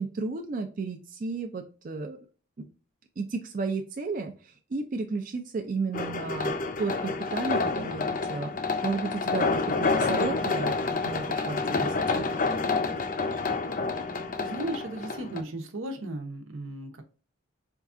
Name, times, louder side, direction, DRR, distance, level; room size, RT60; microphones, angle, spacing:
voice 1, 0.0-2.2 2.6-2.7 3.2-6.5 6.8-8.5 8.8-12.3, right 4 dB, 40° right, 3 dB, 0.4 m, -33 dB
sound 1, 5.9-15.4, left 4 dB, 40° left, 0.4 m, -28 dB
voice 2, 14.4-17.0, right 1 dB, 75° right, 6 dB, 0.8 m, -36 dB
4.5 x 2.3 x 2.5 m, 0.37 s
head